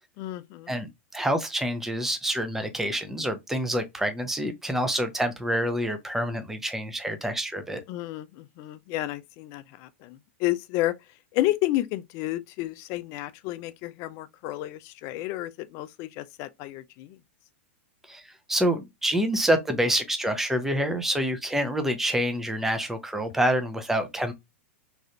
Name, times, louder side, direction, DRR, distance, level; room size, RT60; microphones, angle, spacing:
voice 1, 0.2-0.8 7.9-11.0 11.3-17.2, left 16 dB, 45° left, 0.4 m, -31 dB
voice 2, 1.1-7.8 18.1-18.2 18.5-24.3, equal, 5° right, 0.6 m, -27 dB
3.1 x 2.4 x 2.7 m
hypercardioid pair, 115°, 7 cm